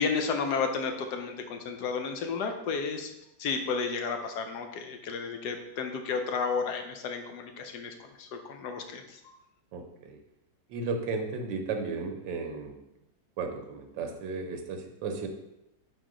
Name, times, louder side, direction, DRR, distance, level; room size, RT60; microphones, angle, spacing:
voice 1, 0.0-3.1 3.4-9.2, left 5 dB, 70° left, 5 dB, 1.2 m, -32 dB
voice 2, 9.7-10.2 10.7-12.8 13.4-15.3, right 4 dB, 85° right, 5 dB, 1.5 m, -34 dB
4.6 x 4.1 x 5.0 m, 0.87 s
omnidirectional pair, 1.9 m